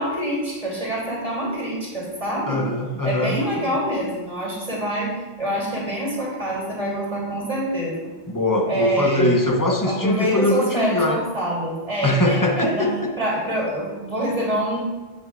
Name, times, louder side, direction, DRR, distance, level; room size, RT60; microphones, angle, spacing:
voice 1, 0.0-2.6 3.0-8.1 8.7-9.4 9.8-12.9 13.2-14.8, equal, 30° right, -5 dB, 3.2 m, -26 dB
voice 2, 2.5-3.7 8.3-11.2 12.0-13.1, left 1 dB, 20° left, 3 dB, 0.7 m, -22 dB
14.5 x 6.3 x 2.5 m, 1.2 s
omnidirectional pair, 1.2 m